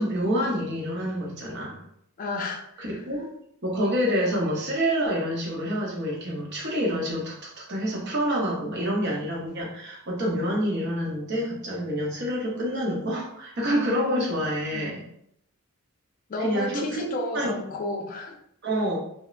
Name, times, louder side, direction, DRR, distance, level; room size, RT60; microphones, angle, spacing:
voice 1, 0.0-1.8 2.8-3.3 3.6-15.0 16.4-17.5 18.6-19.0, equal, 50° right, -2 dB, 0.8 m, -27 dB
voice 2, 2.2-2.9 13.7-14.4 14.7-15.0 16.3-18.4, left 2 dB, 40° left, 1 dB, 0.4 m, -33 dB
2.9 x 2.1 x 2.4 m, 0.72 s
head